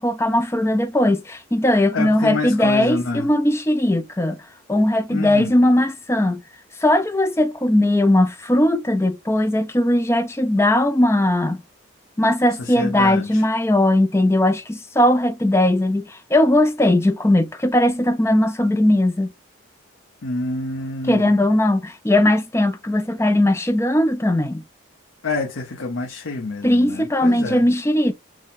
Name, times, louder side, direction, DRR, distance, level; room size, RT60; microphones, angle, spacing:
voice 1, 0.0-4.4 4.7-6.4 6.8-11.6 12.2-19.3 21.1-24.6 26.6-28.1, left 1 dB, 10° left, 0.4 m, -18 dB
voice 2, 1.9-3.3 5.1-5.5 12.6-13.4 20.2-21.3 25.2-27.6, left 3 dB, 75° left, 0.8 m, -27 dB
6.2 x 2.2 x 3.9 m
head